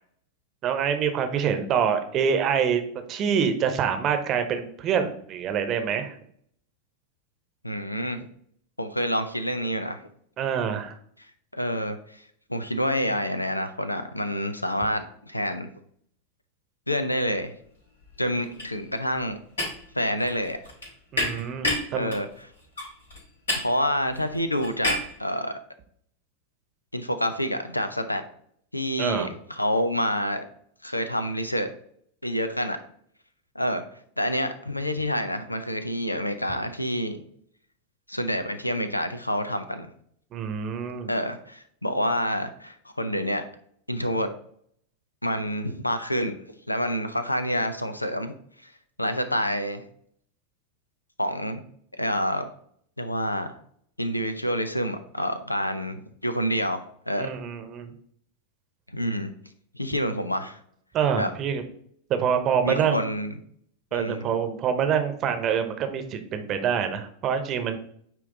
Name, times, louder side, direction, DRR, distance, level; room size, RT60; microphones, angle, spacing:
voice 1, 0.6-2.8 3.1-6.1 10.4-11.0 21.1-22.1 29.0-29.3 40.3-41.1 57.2-57.9 60.9-61.6 62.1-63.0 63.9-67.8, right 7 dB, 35° right, 7 dB, 0.9 m, -26 dB
voice 2, 7.6-8.3 8.8-10.0 11.5-12.2 12.5-15.7 16.9-17.5 18.2-19.4 19.9-20.6 21.9-22.3 23.6-25.5 26.9-28.2 28.7-30.4 30.8-31.7 32.2-32.8 33.6-33.8 34.2-37.2 38.1-39.9 41.1-43.4 43.9-44.3 45.2-46.4 46.7-48.3 48.6-48.7 49.0-49.8 51.2-51.6 51.9-52.5 53.0-53.6 54.0-57.3 58.9-59.3 59.7-60.6 61.2-61.3 62.6-63.4 63.9-64.2, equal, 85° left, 10 dB, 0.5 m, -28 dB
sound 1, 17.4-17.7 18.0-25.2, left 1 dB, 70° left, 2.9 m, -32 dB
9.1 x 3.0 x 3.9 m, 0.63 s
figure-of-eight pair, 90°, 0 cm